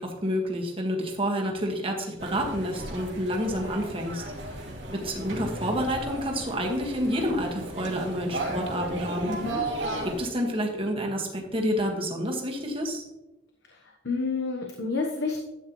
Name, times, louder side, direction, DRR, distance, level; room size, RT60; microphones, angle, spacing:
voice 1, 0.0-4.2 4.9-9.4 10.0-13.0, equal, 30° right, 1 dB, 1.7 m, -29 dB
sound 1, 2.2-10.2, right 2 dB, 75° right, 2.5 m, -35 dB
voice 2, 9.2-9.6 13.7-13.8 14.0-15.4, left 4 dB, 70° left, 1 dB, 1.1 m, -29 dB
12.0 x 9.0 x 3.1 m, 0.97 s
head